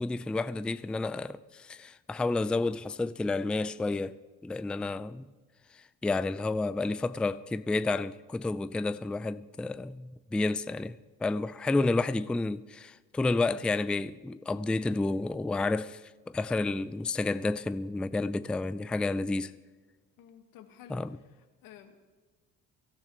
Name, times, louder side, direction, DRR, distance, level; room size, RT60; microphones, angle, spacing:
voice 1, 0.0-5.3 6.0-16.0 16.3-19.5 20.9-21.2, left 3 dB, 5° left, 0.3 m, -30 dB
voice 2, 20.2-22.1, left 9 dB, 75° left, 1.6 m, -53 dB
23.5 x 13.0 x 3.0 m
supercardioid pair, 80°, 34 cm